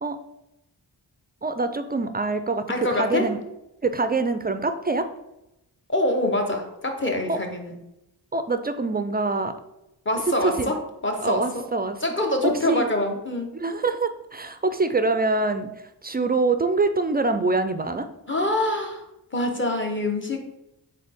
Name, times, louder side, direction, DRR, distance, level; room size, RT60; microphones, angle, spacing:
voice 1, 1.4-3.4 3.8-5.1 7.3-7.4 8.3-9.6 10.3-10.7 11.2-12.0 12.4-12.9 13.5-15.7 16.0-18.1, right 3 dB, 25° right, 9 dB, 0.3 m, -25 dB
voice 2, 2.7-3.3 5.9-7.7 10.0-10.8 11.0-11.6 12.0-13.5 18.3-19.0 19.3-20.4, left 1 dB, 25° left, 3 dB, 1.0 m, -25 dB
3.9 x 3.8 x 3.5 m, 0.90 s
cardioid pair, 45°, 44 cm